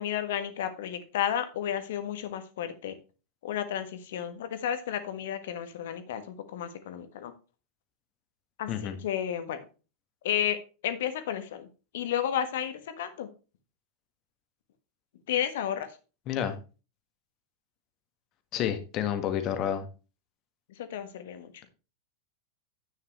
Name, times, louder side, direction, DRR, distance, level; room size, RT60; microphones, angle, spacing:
voice 1, 0.0-3.0 3.4-7.3 8.6-9.7 10.2-11.7 11.9-13.3 15.3-16.0 20.8-21.5, left 10 dB, 55° left, 11 dB, 1.5 m, -32 dB
voice 2, 16.3-16.6 18.5-19.8, left 10 dB, 35° left, 8 dB, 1.7 m, -29 dB
10.5 x 9.2 x 3.2 m, 0.33 s
figure-of-eight pair, 90°, 0 cm